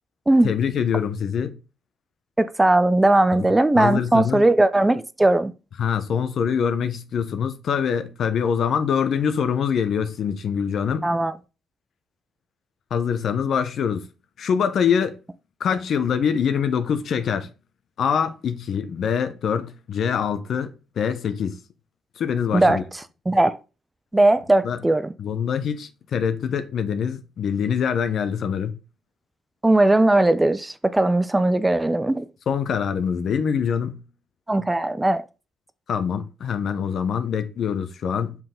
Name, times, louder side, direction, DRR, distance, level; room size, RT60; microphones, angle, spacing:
voice 1, 0.4-1.6 3.3-3.5 3.8-4.4 5.8-11.0 12.9-14.1 14.4-15.2 15.6-17.5 18.0-21.6 22.2-22.8 24.6-24.8 25.2-28.8 32.5-34.0 35.9-38.4, left 7 dB, 60° left, 0.9 m, -24 dB
voice 2, 2.4-5.5 11.0-11.3 22.5-22.8 23.3-23.6 24.1-25.1 29.6-32.3 34.5-35.2, right 2 dB, 15° right, 0.5 m, -18 dB
5.7 x 4.6 x 3.8 m
cardioid pair, 90°, 0 cm